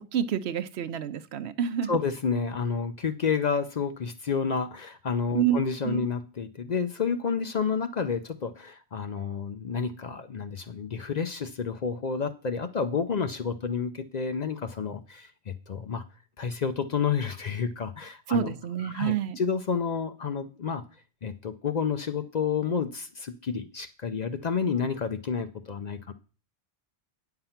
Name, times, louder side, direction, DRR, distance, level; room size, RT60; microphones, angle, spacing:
voice 1, 0.0-1.9 5.3-5.6 5.8-6.1 18.3-19.4, right 9 dB, 75° right, 13 dB, 0.9 m, -28 dB
voice 2, 1.9-16.0 16.4-18.5 18.8-20.8 21.2-26.1, left 6 dB, 50° left, 9 dB, 0.6 m, -30 dB
8.9 x 5.8 x 5.7 m, 0.36 s
omnidirectional pair, 1.1 m